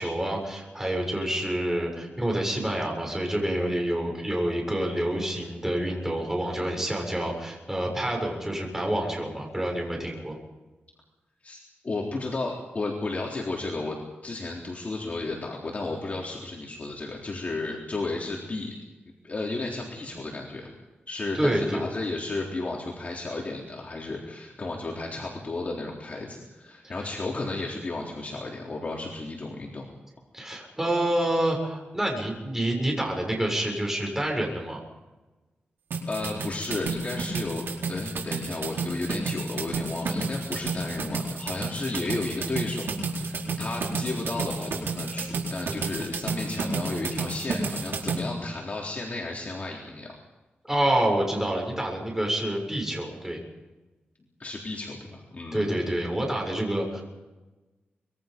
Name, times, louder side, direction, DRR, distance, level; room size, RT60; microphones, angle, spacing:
voice 1, 0.0-10.4 21.3-21.8 26.8-27.1 30.3-34.8 50.6-53.4 55.5-57.0, right 1 dB, 10° right, 0 dB, 7.1 m, -27 dB
voice 2, 11.8-18.7 19.2-20.7 21.1-29.9 36.1-50.1 54.4-55.7, left 2 dB, 40° left, -2 dB, 3.8 m, -33 dB
sound 1, 35.9-48.2, right 4 dB, 80° right, 4.5 m, -31 dB
25.5 x 22.5 x 5.4 m, 1.1 s
wide cardioid pair, 105°, 4 cm